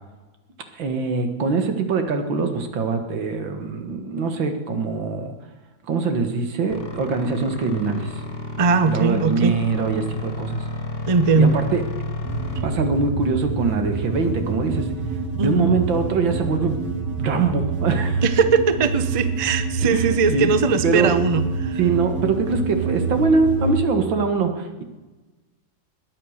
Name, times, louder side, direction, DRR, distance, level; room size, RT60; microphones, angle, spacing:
voice 1, 0.8-5.3 5.8-8.2 8.9-10.7 11.3-11.8 12.6-14.9 15.4-16.8 17.2-18.2 19.9-20.1 20.3-20.5 20.8-21.2 21.8-24.8, right 4 dB, 85° right, 7 dB, 2.4 m, -23 dB
sound 1, 6.7-12.6, left 3 dB, 30° left, 2.0 m, -31 dB
voice 2, 8.6-9.6 11.1-11.5 15.4-15.7 18.2-21.8, right 4 dB, 30° right, 11 dB, 0.6 m, -20 dB
sound 2, 12.2-23.8, right 4 dB, 65° right, 2.6 m, -27 dB
21.0 x 8.6 x 6.6 m, 1.2 s
omnidirectional pair, 2.0 m